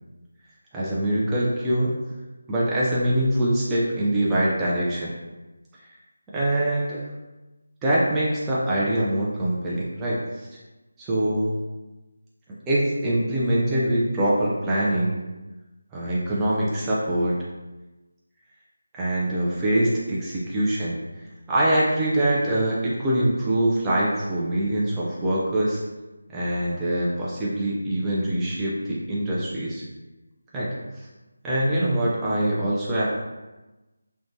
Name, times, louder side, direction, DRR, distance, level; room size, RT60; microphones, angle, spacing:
voice 1, 0.7-1.9 2.5-5.1 6.3-7.0 7.8-10.5 11.0-11.6 12.7-15.2 15.9-17.4 18.9-21.0 21.5-25.8 26.3-29.8 30.5-30.7 31.4-33.1, right 1 dB, 10° right, -8 dB, 0.3 m, -24 dB
3.0 x 2.1 x 2.6 m, 1.1 s
figure-of-eight pair, 170°, 0 cm